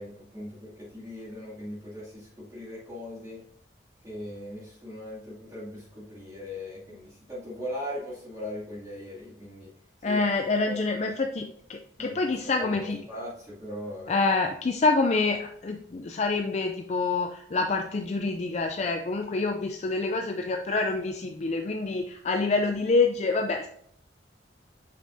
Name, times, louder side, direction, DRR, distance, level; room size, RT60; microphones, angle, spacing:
voice 1, 0.0-3.4 4.0-9.7 10.0-10.2 10.6-11.2 12.0-12.7 13.1-14.2, left 1 dB, 20° right, -9 dB, 2.4 m, -39 dB
voice 2, 10.0-13.0 14.1-23.7, left 3 dB, 40° left, 4 dB, 0.4 m, -27 dB
7.6 x 5.5 x 2.7 m, 0.68 s
head